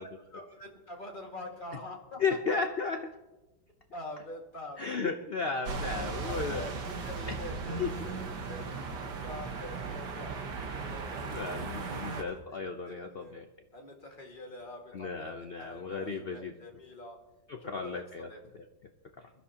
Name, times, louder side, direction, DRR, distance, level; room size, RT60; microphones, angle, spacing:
voice 1, 0.0-2.6 3.9-4.9 5.7-8.6 9.2-13.4 13.7-17.2 17.6-18.0 18.3-18.4, left 2 dB, 25° left, 0 dB, 2.0 m, -45 dB
voice 2, 2.2-3.0 4.8-6.6 7.3-7.4 7.8-7.9 11.3-13.5 14.9-16.5 17.5-18.3, left 4 dB, 85° left, 5 dB, 0.5 m, -34 dB
sound 1, 5.6-12.2, right 4 dB, 65° right, 1.8 m, -37 dB
22.0 x 13.0 x 2.9 m, 1.1 s
omnidirectional pair, 2.1 m